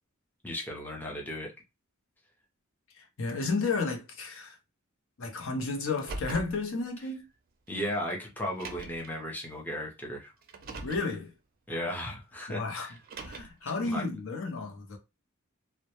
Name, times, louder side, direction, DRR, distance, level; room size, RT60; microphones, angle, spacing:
voice 1, 0.4-1.5 7.7-10.3 11.7-12.9 13.3-13.5 13.8-14.0, equal, 10° left, 0.5 m, -35 dB
voice 2, 2.9-4.6 5.2-7.2 10.8-11.3 12.5-12.9 13.2-15.0, left 3 dB, 65° left, 0.6 m, -32 dB
Car, 5.9-6.6 7.7-7.8 8.5-9.1 10.4-11.1 12.9-13.6, right 3 dB, 45° right, 0.4 m, -41 dB
2.1 x 2.1 x 2.9 m
head